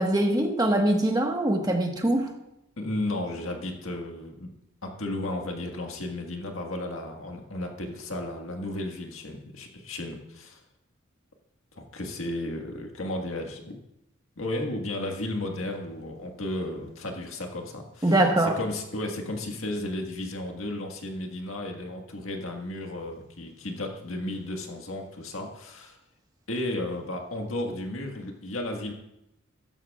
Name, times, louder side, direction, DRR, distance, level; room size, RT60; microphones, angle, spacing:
voice 1, 0.0-2.3 18.0-18.6, right 1 dB, 20° right, 3 dB, 1.4 m, -23 dB
voice 2, 2.8-4.5 4.8-10.6 11.7-13.8 14.4-26.0 26.5-28.9, left 1 dB, 85° left, 2 dB, 1.7 m, -34 dB
15.0 x 13.5 x 2.4 m, 0.85 s
head